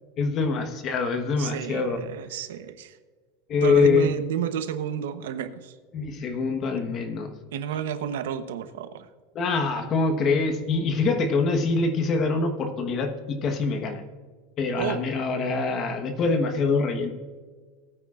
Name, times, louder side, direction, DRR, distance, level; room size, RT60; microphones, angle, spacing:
voice 1, 0.2-2.0 3.5-4.1 5.9-7.3 9.3-14.0 14.6-17.1, left 4 dB, 25° left, 7 dB, 1.2 m, -24 dB
voice 2, 1.4-3.0 3.6-5.7 7.5-9.1 14.8-15.0, right 9 dB, 80° right, 10 dB, 1.0 m, -31 dB
19.5 x 9.0 x 2.5 m, 1.5 s
supercardioid pair, 170°, 0 cm